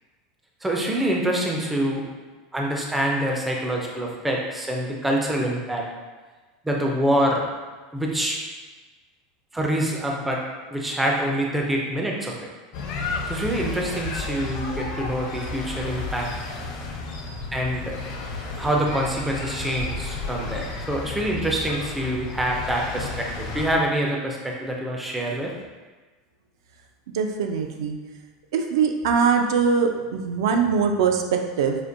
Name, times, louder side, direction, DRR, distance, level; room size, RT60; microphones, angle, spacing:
voice 1, 0.6-2.1 2.5-5.9 6.6-7.4 7.9-8.4 9.5-10.4 10.7-12.3 13.3-16.3 17.5-17.9 18.6-25.5, right 1 dB, 5° right, -1 dB, 0.3 m, -25 dB
sound 1, 12.7-23.7, left 3 dB, 45° left, 0.6 m, -32 dB
voice 2, 27.1-28.0 28.5-31.8, right 6 dB, 85° right, 5 dB, 0.4 m, -22 dB
5.0 x 2.5 x 2.5 m, 1.3 s
supercardioid pair, 180°, 2 cm